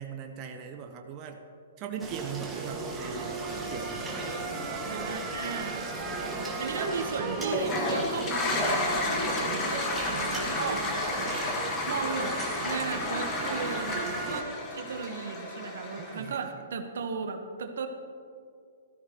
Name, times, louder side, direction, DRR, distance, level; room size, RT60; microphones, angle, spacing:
voice 1, 0.0-1.4 1.8-4.3 16.0-16.6, right 7 dB, 30° right, 3 dB, 1.0 m, -40 dB
sound 1, 2.0-14.4, right 2 dB, 10° right, 1.7 m, -35 dB
voice 2, 4.9-5.9 6.6-10.9 11.9-12.4 12.6-17.9, right 5 dB, 70° right, 6 dB, 1.2 m, -36 dB
Toilet flush, 7.4-16.3, left 2 dB, 25° left, 1.9 m, -32 dB
17.0 x 13.5 x 3.0 m, 2.4 s
hypercardioid pair, 140°, 0 cm